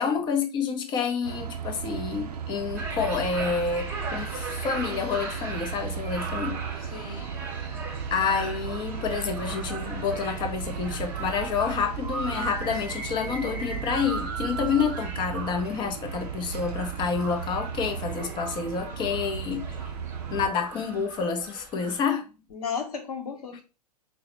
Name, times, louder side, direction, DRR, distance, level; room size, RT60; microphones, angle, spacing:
voice 1, 0.0-6.6 6.8-7.2 8.1-19.7 20.3-22.3, left 6 dB, 20° left, 0.5 m, -29 dB
sound 1, 1.2-20.5, right 7 dB, 70° right, 0.4 m, -36 dB
sound 2, 2.8-22.0, right 3 dB, 10° right, 0.8 m, -38 dB
voice 2, 6.9-7.3 22.5-23.6, left 6 dB, 65° left, 1.0 m, -34 dB
4.7 x 2.0 x 3.0 m
figure-of-eight pair, 105°, 21 cm